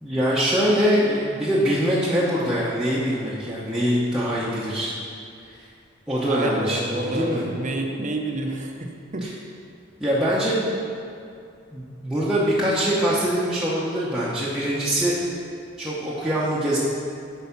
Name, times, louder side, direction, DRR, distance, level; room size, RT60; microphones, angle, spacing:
voice 1, 0.0-4.9 5.6-5.7 6.1-7.4 9.2-9.3 10.0-10.6 11.7-15.2 15.8-16.8, equal, 5° right, -9 dB, 0.9 m, -23 dB
voice 2, 6.3-9.3, right 1 dB, 40° right, 3 dB, 0.7 m, -29 dB
8.0 x 4.9 x 5.7 m, 2.4 s
head